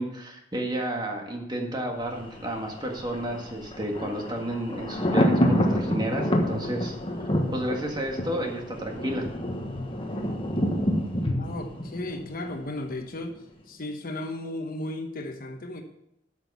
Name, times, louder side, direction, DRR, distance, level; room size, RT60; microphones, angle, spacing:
voice 1, 0.0-6.9 7.5-9.3, right 1 dB, 25° right, 2 dB, 1.8 m, -31 dB
Thunder, 2.1-13.0 13.3-13.4, equal, 30° left, 1.3 m, -28 dB
voice 2, 11.4-13.4 13.7-15.8, left 1 dB, 50° left, 5 dB, 1.1 m, -35 dB
13.0 x 6.2 x 5.5 m, 0.79 s
head